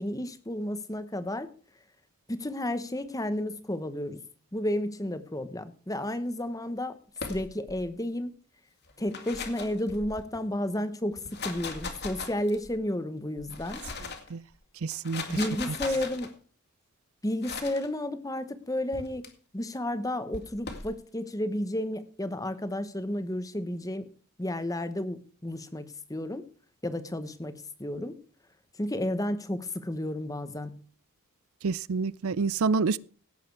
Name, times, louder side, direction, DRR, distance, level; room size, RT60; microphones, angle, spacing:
voice 1, 0.0-1.5 2.3-4.2 4.5-7.0 7.3-8.3 9.0-13.8 15.3-16.3 17.2-19.2 19.5-24.0 24.4-26.4 26.8-28.1 28.8-30.8, left 1 dB, 15° left, 1.0 m, -32 dB
sound 1, 7.2-7.8 8.9-10.4 11.1-12.7 13.4-14.3 14.9-16.3 17.4-17.9 18.9-19.3 20.3-20.9, left 4 dB, 45° left, 2.3 m, -39 dB
voice 2, 14.8-15.2 15.7-15.8 31.6-33.0, right 4 dB, 70° right, 0.5 m, -27 dB
17.5 x 7.5 x 4.7 m
head